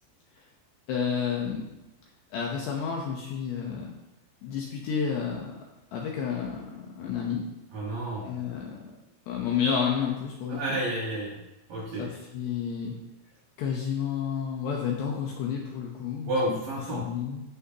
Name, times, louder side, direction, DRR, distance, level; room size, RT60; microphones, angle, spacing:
voice 1, 0.9-1.6 2.3-3.9 4.4-5.5 5.9-7.4 8.2-8.8 9.3-10.8 12.0-12.9 13.6-16.3 16.9-17.4, left 7 dB, 75° left, -1 dB, 2.5 m, -30 dB
voice 2, 7.7-8.3 10.5-11.4 11.7-12.1 16.3-17.1, right 1 dB, 60° right, -4 dB, 2.4 m, -30 dB
15.0 x 6.3 x 2.9 m, 0.95 s
omnidirectional pair, 6.0 m